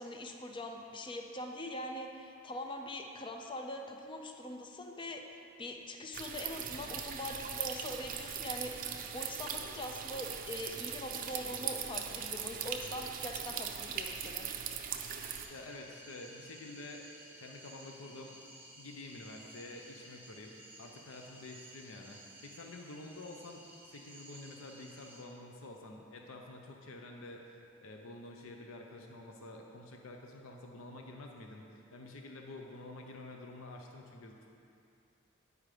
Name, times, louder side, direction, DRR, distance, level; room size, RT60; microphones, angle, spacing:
voice 1, 0.0-14.5, left 1 dB, 25° left, 3 dB, 0.5 m, -43 dB
sound 1, 6.1-15.5, right 8 dB, 45° right, 0.5 m, -40 dB
sound 2, 15.0-25.2, right 1 dB, 10° right, 1.2 m, -55 dB
voice 2, 15.5-17.0 17.4-18.4 18.8-23.6 23.9-34.5, left 2 dB, 80° left, 2 dB, 0.6 m, -49 dB
9.0 x 4.9 x 4.9 m, 2.7 s
head